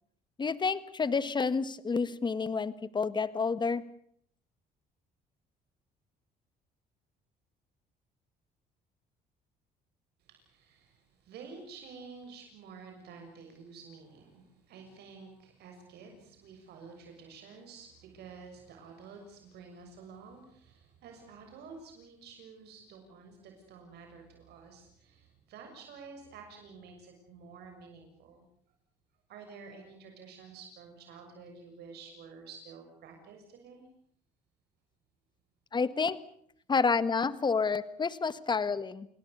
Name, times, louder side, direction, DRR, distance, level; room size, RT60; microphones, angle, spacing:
voice 1, 0.4-3.8 35.7-36.2 36.7-39.1, left 5 dB, 25° left, 15 dB, 1.5 m, -29 dB
voice 2, 10.2-28.4 29.3-33.8, right 5 dB, 75° right, 3 dB, 6.7 m, -50 dB
29.5 x 19.5 x 6.8 m, 0.65 s
cardioid pair, 110°, 17 cm